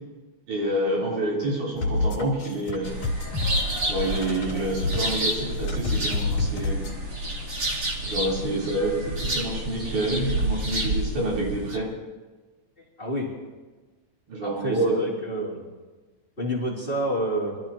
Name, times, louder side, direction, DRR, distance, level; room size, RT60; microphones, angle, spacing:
voice 1, 0.5-2.9 3.9-6.8 8.0-11.9 14.3-15.1, right 1 dB, 85° right, -5 dB, 5.4 m, -27 dB
sound 1, 1.8-6.9, left 3 dB, 70° left, 3.8 m, -29 dB
sound 2, 2.8-11.8, right 1 dB, 40° right, 1.0 m, -29 dB
voice 2, 13.0-13.3 14.4-15.6 16.4-17.6, right 1 dB, 20° left, -5 dB, 2.9 m, -28 dB
24.5 x 13.5 x 2.9 m, 1.3 s
omnidirectional pair, 3.5 m